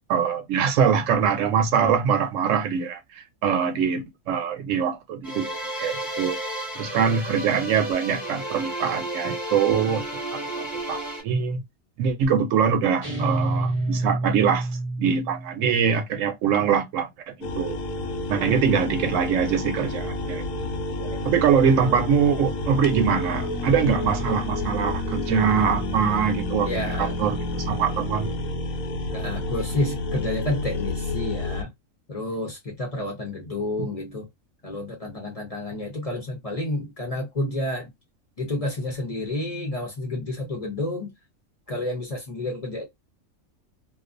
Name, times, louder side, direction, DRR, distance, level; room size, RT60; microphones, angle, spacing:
voice 1, 0.1-5.5 5.8-6.4 6.7-10.0 10.3-11.6 12.0-14.7 15.0-17.8 18.3-20.4 21.2-26.7 27.0-28.4, right 7 dB, 75° right, 0.9 m, -23 dB
sound 1, 5.2-11.2, right 1 dB, ahead, 1.0 m, -32 dB
sound 2, 13.0-15.6, right 2 dB, 30° right, 0.7 m, -27 dB
sound 3, 17.4-31.6, left 2 dB, 85° left, 1.0 m, -29 dB
voice 2, 26.6-27.2 29.1-31.7 32.1-34.3 34.6-37.9 38.4-41.1 41.7-42.9, left 1 dB, 35° left, 0.7 m, -30 dB
2.3 x 2.3 x 2.5 m
omnidirectional pair, 1.4 m